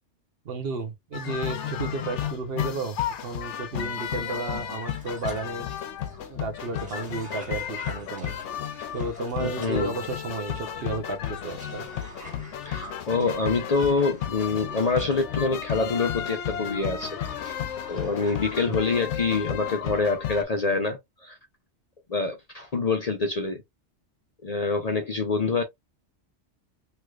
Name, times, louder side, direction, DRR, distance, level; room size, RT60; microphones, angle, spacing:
voice 1, 0.4-3.0 3.2-5.7 6.3-8.4 8.9-11.9, right 3 dB, 60° right, 1.0 m, -33 dB
sound 1, 1.1-20.4, left 9 dB, 75° left, 0.9 m, -33 dB
Cough, 4.8-18.8, equal, 5° right, 1.8 m, -47 dB
voice 2, 9.4-9.9 12.7-17.2 17.9-21.4 22.1-23.6 24.4-25.6, left 4 dB, 45° left, 0.6 m, -26 dB
3.2 x 3.0 x 2.3 m
omnidirectional pair, 1.2 m